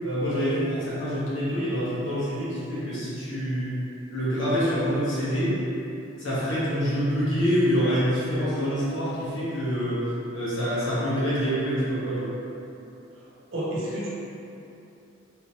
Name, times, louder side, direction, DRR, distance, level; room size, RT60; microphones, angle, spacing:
voice 1, 0.0-3.8 4.1-5.6 6.2-12.3, equal, 70° left, -10 dB, 1.3 m, -26 dB
voice 2, 13.1-14.1, right 1 dB, 75° right, -6 dB, 0.9 m, -32 dB
3.6 x 3.1 x 2.9 m, 2.9 s
head